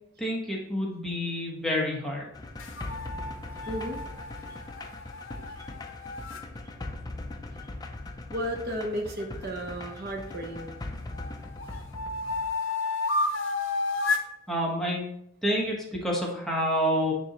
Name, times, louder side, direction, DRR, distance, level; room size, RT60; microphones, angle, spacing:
voice 1, 0.2-2.3 14.5-15.0 15.4-17.1, equal, ahead, -4 dB, 1.2 m, -28 dB
sound 1, 2.3-12.5, left 2 dB, 20° left, 0.5 m, -40 dB
sound 2, 2.6-6.4 9.4-10.6 11.1-14.3, left 3 dB, 70° left, 0.7 m, -32 dB
voice 2, 3.6-4.0 8.3-10.7, equal, 50° right, 2 dB, 0.8 m, -33 dB
9.5 x 3.5 x 3.0 m, 0.76 s
head